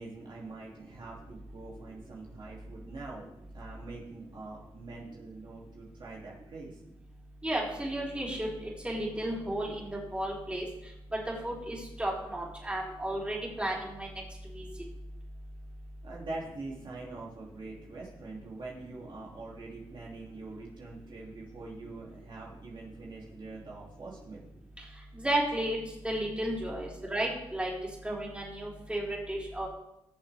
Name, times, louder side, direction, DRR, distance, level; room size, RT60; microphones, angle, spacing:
voice 1, 0.0-3.3 3.5-6.8 16.0-24.5, right 3 dB, 55° right, -4 dB, 2.7 m, -44 dB
voice 2, 7.4-8.5 8.8-10.7 11.1-14.1 14.5-14.7 25.2-25.8 26.0-27.7 28.0-29.7, right 1 dB, 10° right, -4 dB, 4.2 m, -33 dB
20.5 x 7.2 x 3.5 m, 0.84 s
cardioid pair, 80°, 10 cm